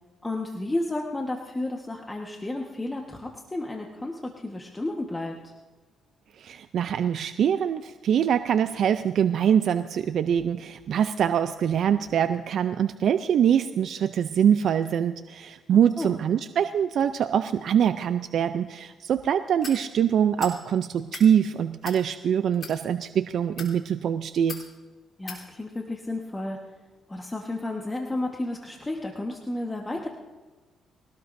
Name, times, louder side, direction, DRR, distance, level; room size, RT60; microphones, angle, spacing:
voice 1, 0.2-5.5 16.0-16.1 25.2-26.6 27.1-30.1, left 2 dB, 15° left, 1 dB, 1.4 m, -32 dB
voice 2, 6.4-24.6, right 8 dB, 65° right, 10 dB, 0.5 m, -24 dB
sound 1, 19.6-19.8 20.4-20.6 21.0-21.3 21.8-22.0 22.5-22.8 23.4-23.7 24.5-24.7 25.3-25.4, left 4 dB, 45° left, 3.6 m, -38 dB
23.0 x 18.0 x 2.7 m, 1.3 s
cardioid pair, 90°, 0 cm